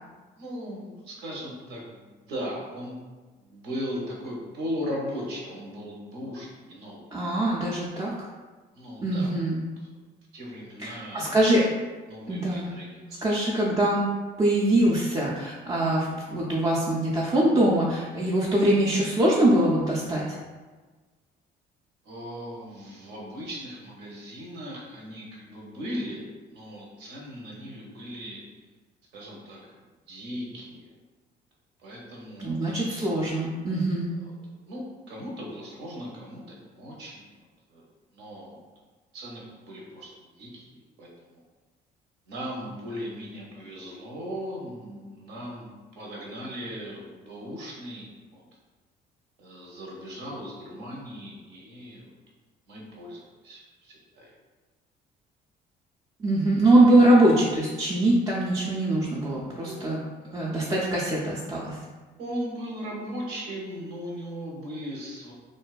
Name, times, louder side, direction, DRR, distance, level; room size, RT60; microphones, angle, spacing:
voice 1, 0.4-3.0 3.4-7.1 8.7-9.3 10.3-11.3 12.1-13.4 22.0-28.4 29.1-30.9 31.8-32.6 34.2-34.3 34.7-37.8 38.1-38.6 39.1-41.4 42.3-45.7 46.0-48.4 49.4-52.1 52.7-54.3 59.6-59.8 62.2-65.3, equal, 80° right, -3 dB, 0.8 m, -38 dB
voice 2, 7.1-8.1 9.0-9.6 10.8-11.6 12.3-12.7 13.2-14.1 14.4-20.4 32.4-34.1 56.2-60.0 60.3-61.8, right 1 dB, 20° right, -6 dB, 0.3 m, -23 dB
2.5 x 2.2 x 2.3 m, 1.3 s
cardioid pair, 110°, 17 cm